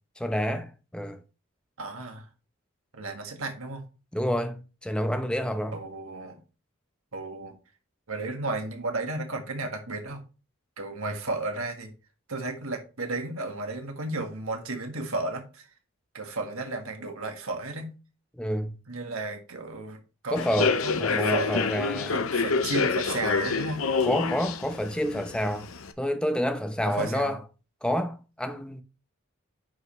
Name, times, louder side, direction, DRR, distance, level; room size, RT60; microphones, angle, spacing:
voice 1, 0.2-1.2 4.1-5.8 18.4-18.8 20.3-22.2 24.0-25.7 26.0-27.4 27.8-28.8, equal, 5° left, 0.7 m, -28 dB
voice 2, 1.8-2.3 2.9-3.8 5.7-6.4 7.1-7.5 8.1-10.2 10.8-11.9 12.3-15.7 16.1-17.9 18.9-20.4 20.8-21.7 22.1-23.8 26.8-27.4, right 2 dB, 75° right, 1.7 m, -33 dB
Human voice / Subway metro underground, 20.3-25.9, left 5 dB, 75° left, 0.8 m, -27 dB
9.4 x 5.5 x 3.1 m
head